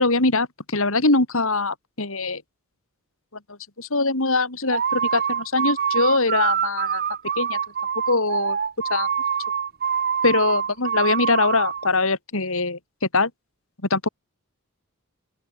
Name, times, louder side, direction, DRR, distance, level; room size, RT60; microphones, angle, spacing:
voice 1, 0.0-2.4 3.8-7.0 7.4-7.6 8.1-8.6 8.9-9.1 10.2-12.8 13.1-13.3 13.9-14.1, left 3 dB, 65° left, 3.6 m, -22 dB
sound 1, 4.7-11.9, right 7 dB, 45° right, 1.2 m, -25 dB
open air
head